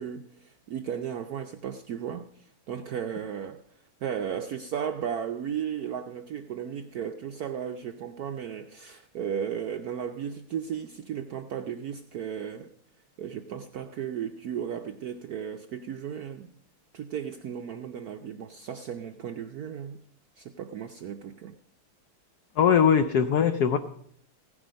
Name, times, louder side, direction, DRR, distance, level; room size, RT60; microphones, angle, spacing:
voice 1, 0.0-3.6 4.0-12.7 13.2-16.5 16.9-20.0 20.4-21.5, right 8 dB, 90° right, 6 dB, 0.8 m, -35 dB
voice 2, 22.6-23.8, left 7 dB, 85° left, 10 dB, 0.8 m, -21 dB
15.5 x 9.8 x 5.1 m, 0.67 s
omnidirectional pair, 2.4 m